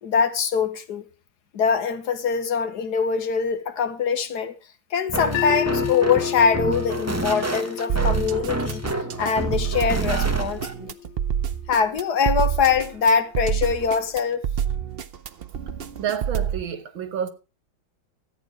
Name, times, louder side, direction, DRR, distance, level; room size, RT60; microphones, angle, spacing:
voice 1, 0.0-1.0 1.5-4.6 4.9-8.8 9.2-10.9 11.7-14.4, left 6 dB, 60° left, 1.5 m, -23 dB
sound 1, 5.1-10.7, right 2 dB, 15° right, 0.6 m, -29 dB
sound 2, 5.3-11.5, left 11 dB, 85° left, 1.8 m, -32 dB
sound 3, 7.9-16.6, right 9 dB, 65° right, 0.5 m, -27 dB
voice 2, 16.0-17.3, right 8 dB, 90° right, 2.1 m, -29 dB
14.0 x 9.0 x 5.0 m
omnidirectional pair, 2.1 m